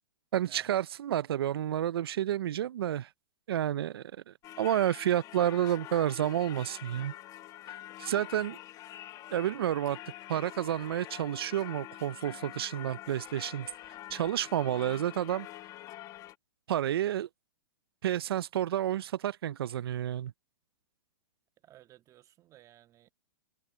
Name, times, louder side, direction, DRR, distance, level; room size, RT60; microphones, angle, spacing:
voice 1, 0.3-3.1 3.5-7.1 8.0-8.6 9.3-10.0 10.3-13.7 14.1-15.5 16.7-17.3 18.0-20.3, right 11 dB, 80° right, 0.5 m, -30 dB
Singing / Church bell, 4.4-16.4, left 14 dB, 30° left, 1.2 m, -46 dB
voice 2, 21.6-23.1, right 13 dB, 25° right, 1.6 m, -57 dB
hypercardioid pair, 140°, 13 cm